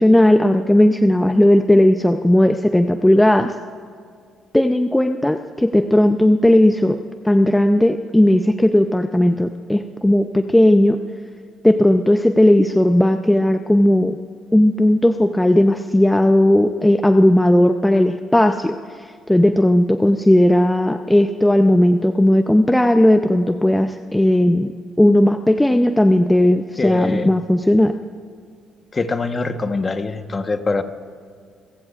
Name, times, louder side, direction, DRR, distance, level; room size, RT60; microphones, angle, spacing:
voice 1, 0.0-3.5 4.5-7.0 7.2-11.0 11.6-14.2 14.5-27.9, left 1 dB, 10° left, 7 dB, 0.6 m, -15 dB
voice 2, 26.8-27.3 28.9-30.8, left 3 dB, 30° left, 8 dB, 1.1 m, -23 dB
27.5 x 15.5 x 2.5 m, 2.1 s
supercardioid pair, 75°, 0 cm